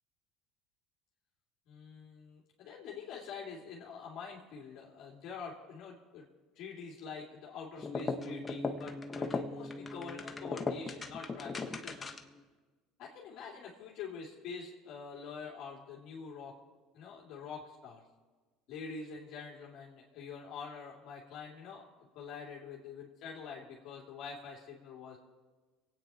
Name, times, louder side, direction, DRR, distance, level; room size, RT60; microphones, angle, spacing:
voice 1, 1.7-6.3 6.5-12.1 13.0-16.5 16.9-18.0 18.7-21.8 22.1-25.2, left 5 dB, 60° left, -4 dB, 2.6 m, -46 dB
sound 1, 7.8-12.4, left 3 dB, 25° left, 1.2 m, -38 dB
24.5 x 9.3 x 4.3 m, 1.3 s
supercardioid pair, 90°, 0 cm